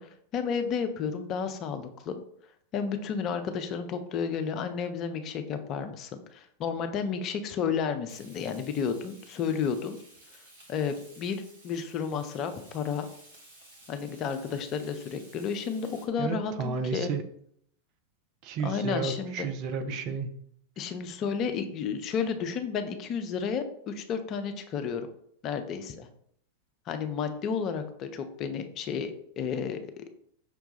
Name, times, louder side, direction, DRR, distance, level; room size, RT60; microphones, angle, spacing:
voice 1, 0.0-2.2 2.7-10.0 10.7-13.1 13.9-17.1 18.6-19.3 20.8-25.0 25.4-26.1 26.9-30.0, left 6 dB, 35° left, 8 dB, 0.5 m, -32 dB
Frying (food), 8.1-16.0, right 1 dB, 60° right, 1.4 m, -54 dB
voice 2, 16.2-17.2 18.4-20.4, right 5 dB, 40° right, 8 dB, 0.5 m, -32 dB
5.6 x 2.2 x 4.0 m, 0.67 s
figure-of-eight pair, 90°, 0 cm